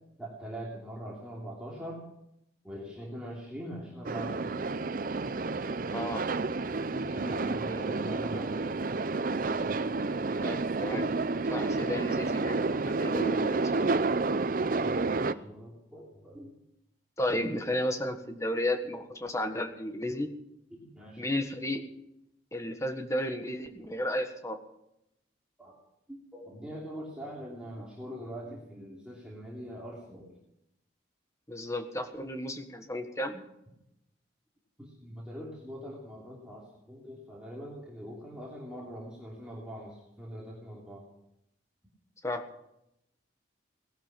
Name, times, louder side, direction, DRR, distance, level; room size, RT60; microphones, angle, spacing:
voice 1, 0.2-2.0 2.6-4.6 6.8-8.8 14.8-16.6 20.7-21.4 25.6-25.8 26.1-30.4 34.8-41.0, equal, 5° right, -6 dB, 2.9 m, -43 dB
sound 1, 4.0-15.3, right 3 dB, 50° right, 0.6 m, -30 dB
voice 2, 5.9-6.2 7.7-7.9 10.4-11.1 11.5-13.6 17.2-20.3 21.2-21.8 22.5-24.6 31.5-33.4 42.2-42.4, left 1 dB, 15° left, 6 dB, 1.5 m, -33 dB
18.5 x 12.0 x 6.0 m, 0.83 s
head